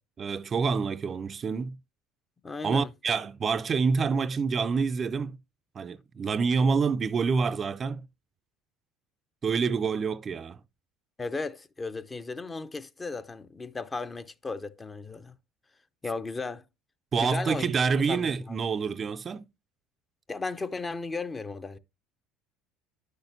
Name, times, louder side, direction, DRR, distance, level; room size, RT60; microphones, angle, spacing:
voice 1, 0.2-1.8 2.6-5.4 5.8-8.1 9.4-10.6 17.1-19.4, right 5 dB, 35° right, 0.4 m, -27 dB
voice 2, 2.4-2.9 11.2-15.3 16.0-16.7 17.2-17.7 18.1-18.6 20.3-21.8, left 3 dB, 25° left, 0.6 m, -35 dB
9.8 x 6.4 x 2.7 m
hypercardioid pair, 70°, 0 cm